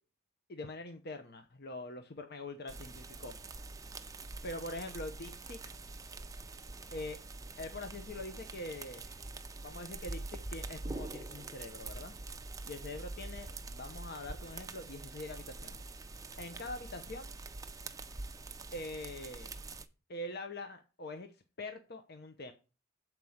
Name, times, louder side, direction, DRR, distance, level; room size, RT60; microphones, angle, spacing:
voice 1, 0.5-3.3 4.4-5.6 6.9-7.2 7.6-9.2 9.6-12.1 12.7-15.8 16.4-17.4 18.7-19.5 20.1-22.5, left 2 dB, 50° left, 0.9 m, -44 dB
sound 1, 2.7-19.9, right 3 dB, 15° right, 0.6 m, -45 dB
7.8 x 4.6 x 7.1 m
head